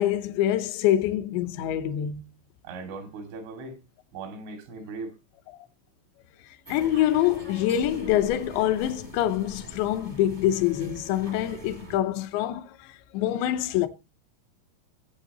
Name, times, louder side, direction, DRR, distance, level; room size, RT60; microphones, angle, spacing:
voice 1, 0.0-2.2 6.5-13.9, left 12 dB, 80° left, 3.0 m, -25 dB
voice 2, 2.6-3.8 4.1-5.1, right 3 dB, 90° right, 4.9 m, -38 dB
sound 1, 6.6-12.0, right 1 dB, 40° right, 0.6 m, -43 dB
17.0 x 8.8 x 2.9 m
omnidirectional pair, 5.3 m